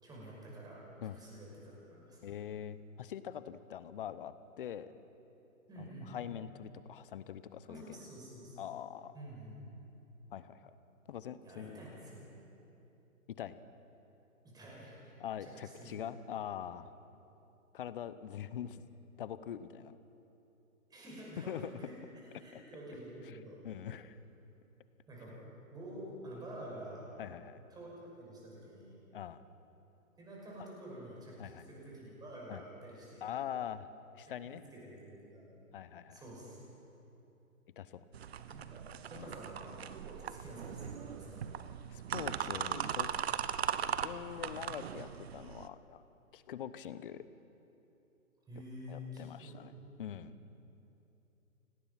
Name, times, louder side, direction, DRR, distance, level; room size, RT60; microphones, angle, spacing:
voice 1, 0.0-2.3 5.7-6.2 7.7-8.6 9.1-9.7 11.4-12.3 14.4-15.1 15.4-15.9 17.3-17.4 20.9-22.0 22.4-23.6 25.1-25.4 25.7-27.1 27.7-29.0 30.2-33.2 34.4-35.5 36.1-36.6 38.5-41.5 48.5-49.9, right 1 dB, 10° right, -4 dB, 5.9 m, -49 dB
voice 2, 2.2-4.9 5.8-8.0 8.6-9.1 10.3-10.7 11.1-11.8 13.4-13.6 15.2-16.9 17.7-18.8 19.2-20.0 21.5-21.7 22.5-22.6 23.3-23.4 23.6-24.2 27.2-27.6 29.1-29.4 31.4-31.7 32.5-32.6 33.2-33.9 34.1-34.6 35.7-36.2 37.8-38.0 39.1-39.3 41.9-43.1 44.0-46.0 46.3-47.2 48.9-49.7 50.0-50.4, left 9 dB, 40° left, 14 dB, 0.9 m, -43 dB
sound 1, 38.1-45.7, right 9 dB, 45° right, 0.9 m, -39 dB
30.0 x 18.5 x 5.9 m, 2.9 s
hypercardioid pair, 145°, 43 cm